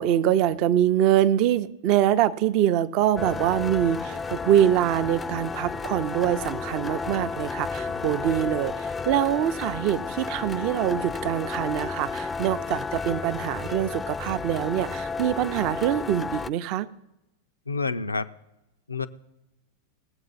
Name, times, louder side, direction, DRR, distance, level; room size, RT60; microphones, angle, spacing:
voice 1, 0.0-16.9, right 11 dB, 45° right, 13 dB, 0.5 m, -24 dB
sound 1, 3.2-16.5, left 4 dB, 15° left, 0.3 m, -32 dB
voice 2, 17.7-18.3 18.9-19.1, left 4 dB, 85° left, 13 dB, 0.4 m, -29 dB
19.5 x 7.9 x 4.1 m, 0.95 s
figure-of-eight pair, 90°, 0 cm